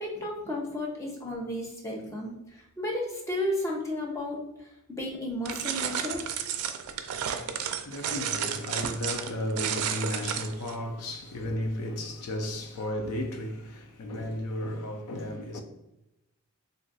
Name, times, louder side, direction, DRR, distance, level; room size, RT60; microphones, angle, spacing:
voice 1, 0.0-6.2, left 1 dB, 15° left, 0.5 m, -33 dB
sound 1, 5.5-10.8, right 8 dB, 80° right, 0.3 m, -32 dB
voice 2, 7.0-15.6, left 1 dB, 85° left, 0.5 m, -34 dB
2.6 x 2.3 x 3.9 m
head